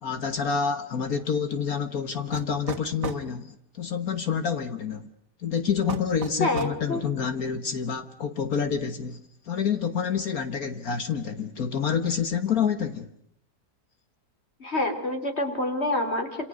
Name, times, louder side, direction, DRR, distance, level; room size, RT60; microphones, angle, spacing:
voice 1, 0.0-5.1 5.4-13.1, left 6 dB, 60° left, 9 dB, 1.7 m, -28 dB
sound 1, 2.3-3.3 5.9-6.8, right 6 dB, 80° right, 2.0 m, -35 dB
voice 2, 6.4-7.0 14.6-16.5, left 2 dB, 40° left, 6 dB, 4.2 m, -27 dB
28.0 x 27.5 x 6.3 m, 0.70 s
omnidirectional pair, 1.8 m